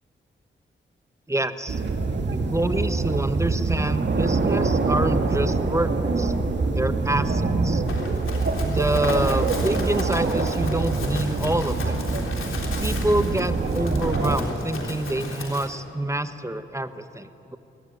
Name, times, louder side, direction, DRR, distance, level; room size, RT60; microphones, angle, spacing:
voice 1, 1.3-1.8 2.3-6.3 6.7-7.8 8.6-12.0 12.8-17.6, right 1 dB, 15° right, 10 dB, 1.4 m, -27 dB
sound 1, 1.7-14.4, right 3 dB, 60° right, 2.2 m, -24 dB
Run, 7.9-15.7, left 3 dB, 75° left, 3.5 m, -35 dB
21.0 x 19.0 x 9.5 m, 2.9 s
cardioid pair, 50°, 21 cm